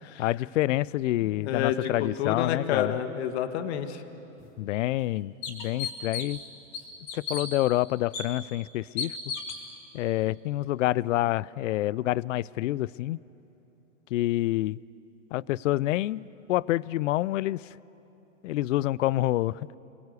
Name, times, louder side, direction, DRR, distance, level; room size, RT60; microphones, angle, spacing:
voice 1, 0.2-3.0 4.6-6.4 7.1-9.2 9.9-13.2 14.1-14.8 15.3-17.8 18.4-19.7, left 15 dB, 75° left, 23 dB, 0.5 m, -27 dB
voice 2, 1.2-1.9 2.2-4.0, left 9 dB, 55° left, 8 dB, 1.8 m, -29 dB
sound 1, 4.4-4.5 5.0-5.1 5.4-6.4 6.7-7.5 8.1-8.2 9.0-9.6, left 6 dB, 35° left, 4.5 m, -34 dB
28.0 x 21.5 x 8.3 m, 3.0 s
hypercardioid pair, 140°, 38 cm